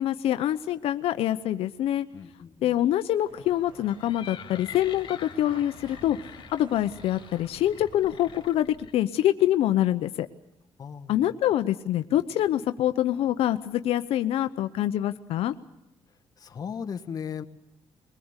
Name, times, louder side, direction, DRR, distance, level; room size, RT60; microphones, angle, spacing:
voice 1, 0.0-2.1 2.6-6.2 6.5-10.3 11.1-15.5, left 12 dB, 80° left, 10 dB, 0.8 m, -25 dB
voice 2, 2.1-2.8 10.8-11.2 16.4-17.4, left 7 dB, 40° left, 7 dB, 1.4 m, -37 dB
sound 1, 3.2-8.5, right 2 dB, 55° right, 6.5 m, -50 dB
sound 2, 3.7-8.9, left 8 dB, 55° left, 2.7 m, -46 dB
22.0 x 20.5 x 8.1 m, 0.87 s
cardioid pair, 130°, 10 cm